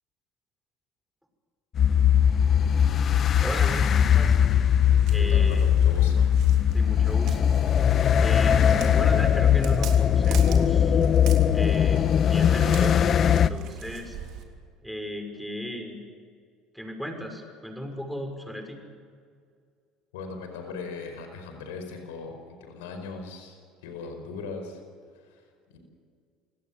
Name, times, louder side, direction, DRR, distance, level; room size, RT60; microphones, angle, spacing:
sound 1, 1.8-13.5, left 8 dB, 45° left, 1.0 m, -20 dB
voice 1, 3.4-4.4 5.1-5.6 6.7-7.5 8.2-11.0 11.5-14.2 14.8-16.0 16.7-18.8, equal, ahead, 4 dB, 6.2 m, -36 dB
Walk footsteps, 4.8-14.4, right 8 dB, 65° right, 3.3 m, -43 dB
voice 2, 5.2-6.3 20.1-24.8 25.1-25.8, left 4 dB, 80° left, 5 dB, 4.9 m, -39 dB
28.5 x 18.0 x 7.6 m, 2.1 s
hypercardioid pair, 70°, 0 cm